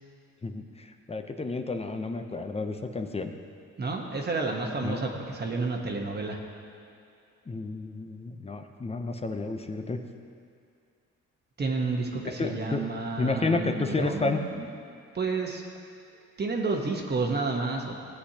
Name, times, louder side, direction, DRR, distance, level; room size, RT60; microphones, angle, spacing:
voice 1, 0.4-3.3 4.8-5.0 7.5-10.0 12.2-12.8 13.2-14.4, left 3 dB, 20° left, 6 dB, 0.6 m, -31 dB
voice 2, 3.8-6.4 11.6-14.7 15.1-15.6 16.4-18.0, right 3 dB, 35° right, 1 dB, 1.2 m, -30 dB
16.0 x 8.2 x 2.9 m, 2.4 s
cardioid pair, 90°, 30 cm